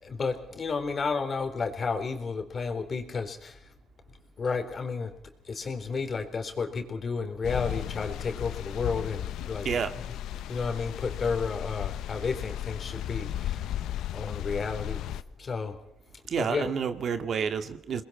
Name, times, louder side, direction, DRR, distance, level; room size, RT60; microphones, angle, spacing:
voice 1, 0.0-3.7 4.4-5.1 5.4-9.7 9.9-10.2 10.5-13.6 14.1-15.0 15.4-15.8 16.4-16.7, left 4 dB, 40° left, 6 dB, 4.0 m, -32 dB
sound 1, 7.4-15.2, left 11 dB, 85° left, 0.9 m, -35 dB
voice 2, 16.3-18.0, right 6 dB, 60° right, 9 dB, 2.0 m, -29 dB
28.5 x 21.0 x 4.4 m, 0.72 s
cardioid pair, 90°, 0 cm